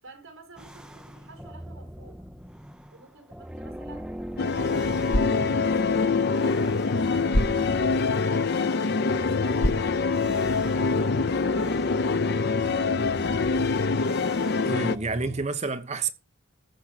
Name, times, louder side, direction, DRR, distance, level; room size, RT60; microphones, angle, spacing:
voice 1, 0.0-2.3 2.9-8.5 9.0-9.9 10.6-12.9, right 3 dB, 65° right, 4.5 m, -50 dB
sound 1, 0.6-15.5, equal, 5° right, 0.7 m, -44 dB
sound 2, 4.4-15.0, left 4 dB, 50° left, 0.6 m, -25 dB
sound 3, 4.9-10.9, equal, 75° left, 1.6 m, -33 dB
voice 2, 14.6-16.1, right 4 dB, 30° right, 1.0 m, -29 dB
14.5 x 5.4 x 6.4 m
head